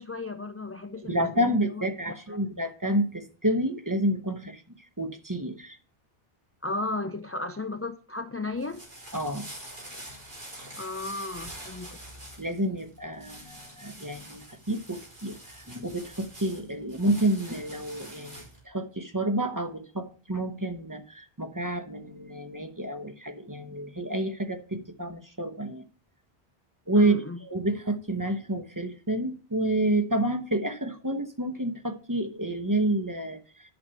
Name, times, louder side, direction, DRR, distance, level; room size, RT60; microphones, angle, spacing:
voice 1, 0.0-2.4 6.6-8.8 10.8-12.0 26.9-27.4, left 2 dB, 25° left, 9 dB, 0.3 m, -35 dB
voice 2, 1.0-4.6 5.0-5.8 9.1-9.5 12.4-25.8 26.9-27.2 27.5-33.7, right 1 dB, 20° right, 7 dB, 1.0 m, -29 dB
sound 1, 8.4-18.6, right 1 dB, 50° right, 4.0 m, -45 dB
10.5 x 6.3 x 5.6 m, 0.37 s
omnidirectional pair, 1.1 m